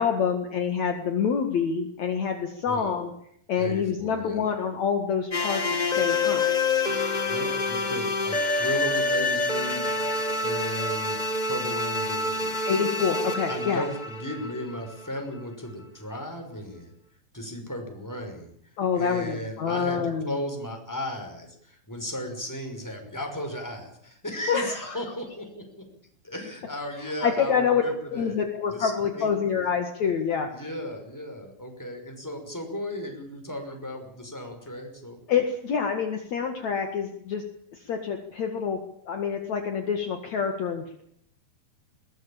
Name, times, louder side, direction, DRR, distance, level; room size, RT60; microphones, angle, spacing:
voice 1, 0.0-3.1 3.5-5.6 5.9-6.5 12.7-13.8 18.8-20.3 24.5-25.0 27.2-27.8 28.1-30.5 35.3-37.4 37.7-38.8 39.1-41.0, left 6 dB, 55° left, 5 dB, 3.0 m, -26 dB
voice 2, 3.6-4.5 7.2-9.9 10.4-11.2 11.5-12.6 13.5-16.9 17.3-18.5 18.9-25.9 26.2-28.4 28.7-29.3 30.5-35.2, equal, 5° left, 3 dB, 5.7 m, -35 dB
sound 1, 5.3-15.2, left 3 dB, 35° left, 0.6 m, -27 dB
21.5 x 19.5 x 8.9 m, 0.69 s
omnidirectional pair, 4.2 m